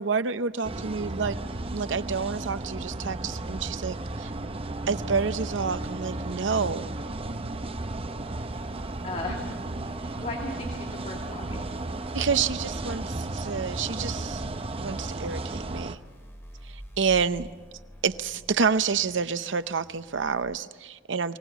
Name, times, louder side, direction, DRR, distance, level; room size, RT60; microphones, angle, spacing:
voice 1, 0.0-1.4 1.7-4.3 4.9-6.9 12.1-14.4 14.7-16.0 16.6-17.5 18.0-21.4, right 5 dB, 70° right, 12 dB, 0.8 m, -28 dB
sound 1, 0.6-16.0, right 2 dB, 30° right, 0.8 m, -34 dB
sound 2, 8.5-20.4, equal, 15° left, 2.8 m, -48 dB
voice 2, 9.0-11.8, left 2 dB, 35° left, 1 dB, 2.5 m, -37 dB
24.0 x 18.0 x 8.2 m, 1.3 s
head